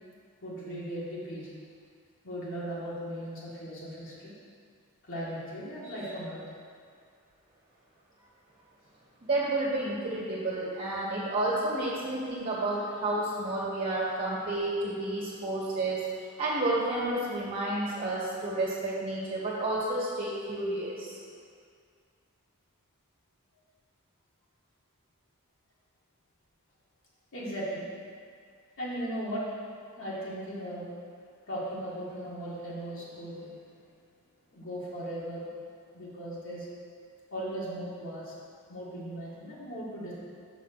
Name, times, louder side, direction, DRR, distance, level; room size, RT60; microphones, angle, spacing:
voice 1, 0.4-1.5 2.2-4.3 5.0-6.4 27.3-27.9 28.8-29.4 30.0-30.9 31.5-33.8 34.5-35.5 35.9-36.7 37.3-38.3 38.7-40.1, equal, 60° left, -8 dB, 1.9 m, -37 dB
voice 2, 9.2-21.2, right 2 dB, 40° right, -7 dB, 1.7 m, -31 dB
6.1 x 5.4 x 6.0 m, 2.1 s
head